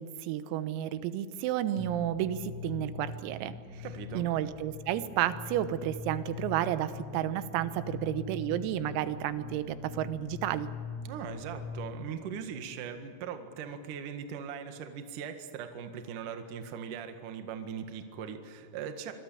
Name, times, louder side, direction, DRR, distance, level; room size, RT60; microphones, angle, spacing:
voice 1, 0.0-3.9 4.2-10.7, right 12 dB, 85° right, 12 dB, 3.8 m, -32 dB
sound 1, 1.8-12.0, left 5 dB, ahead, 6.2 m, -42 dB
voice 2, 3.8-4.4 11.0-19.1, right 7 dB, 55° right, 7 dB, 2.5 m, -40 dB
25.5 x 22.5 x 8.6 m, 2.3 s
omnidirectional pair, 6.0 m